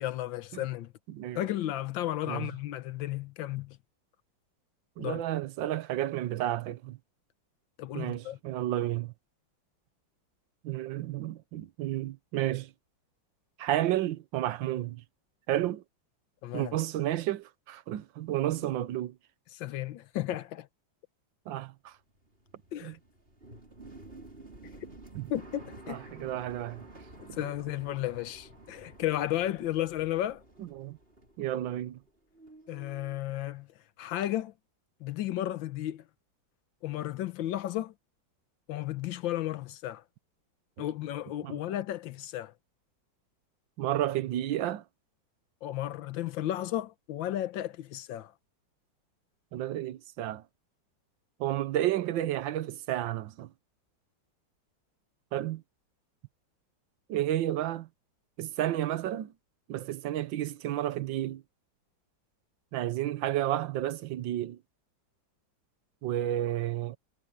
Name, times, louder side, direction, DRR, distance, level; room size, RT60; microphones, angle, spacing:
voice 1, 0.0-0.9 1.3-3.8 5.0-5.2 7.8-8.4 16.4-16.8 19.5-20.7 22.7-23.0 25.3-26.1 27.2-30.4 32.7-33.7 34.0-34.5 35.0-36.0 36.8-37.9 38.7-40.0 40.8-42.5 45.6-48.3, left 13 dB, 80° left, 1.6 m, -33 dB
voice 2, 1.1-1.5 2.3-2.5 5.0-7.0 7.9-9.1 10.6-12.7 13.6-15.0 15.5-15.8 16.5-19.2 21.5-22.0 22.8-22.9 25.1-25.3 25.9-26.8 27.3-27.4 30.6-31.0 31.4-32.0 41.4-41.6 43.8-44.8 49.5-50.4 51.4-53.5 55.3-55.6 57.1-57.9 58.4-59.3 59.7-61.4 62.7-64.6 66.0-67.0, right 13 dB, 80° right, 1.5 m, -31 dB
sound 1, 22.0-32.1 32.3-33.2, right 2 dB, 30° right, 5.0 m, -51 dB
omnidirectional pair, 2.1 m